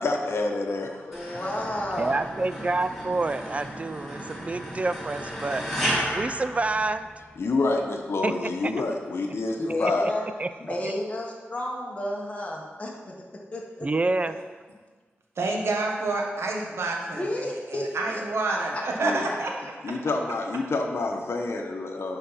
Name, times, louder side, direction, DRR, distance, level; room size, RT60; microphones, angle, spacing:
voice 1, 0.0-1.4 7.4-10.1 19.0-19.3 19.8-22.2, left 3 dB, 70° left, 3 dB, 1.0 m, -28 dB
voice 2, 1.0-2.2 9.6-10.3 10.6-13.2 13.5-13.9 14.2-14.3 17.2-18.2 18.5-19.1, left 1 dB, 30° left, -2 dB, 1.3 m, -32 dB
sound 1, 1.1-7.4, equal, 5° left, 2.4 m, -33 dB
voice 3, 2.0-5.6 6.1-7.1 8.2-8.3 8.6-8.7 9.8-9.9 10.4-10.5 10.8-10.9 13.8-14.4, right 3 dB, 30° right, 11 dB, 0.4 m, -27 dB
voice 4, 15.4-19.7, right 3 dB, 80° right, 0 dB, 1.3 m, -28 dB
11.0 x 3.8 x 5.6 m, 1.4 s
wide cardioid pair, 110°, 4 cm